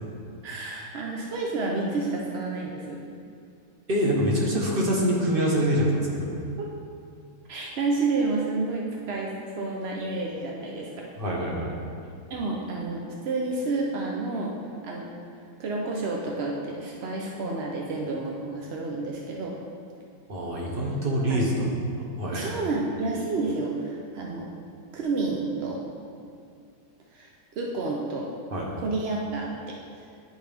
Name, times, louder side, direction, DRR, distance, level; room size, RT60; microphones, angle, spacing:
voice 1, 0.4-3.0 5.4-5.5 6.6-6.7 7.5-10.9 12.3-14.6 14.8-15.1 15.6-19.5 21.3-21.7 22.3-24.5 24.9-25.8 27.1-27.3 27.6-28.3 28.8-29.7, right 3 dB, 65° right, -2 dB, 0.6 m, -30 dB
voice 2, 3.9-6.3 11.2-11.8 20.3-21.7 22.2-22.5 28.5-28.7, equal, 35° right, -3 dB, 1.1 m, -25 dB
10.0 x 4.5 x 3.5 m, 2.3 s
omnidirectional pair, 1.8 m